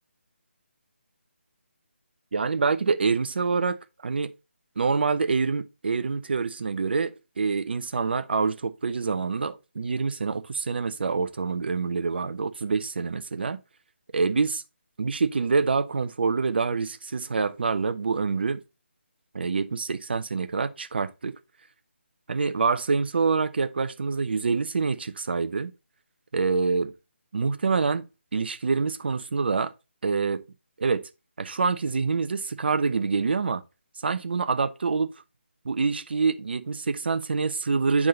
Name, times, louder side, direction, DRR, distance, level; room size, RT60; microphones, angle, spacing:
voice 1, 2.3-4.3 4.8-13.6 14.1-14.6 15.0-18.6 19.3-21.4 22.3-25.7 26.3-26.9 27.3-28.1 28.3-29.7 30.0-30.4 30.8-31.1 31.4-33.6 34.0-35.1 35.6-38.1, right 4 dB, 55° right, 0.8 m, -26 dB
9.4 x 3.7 x 3.9 m
figure-of-eight pair, 155°, 7 cm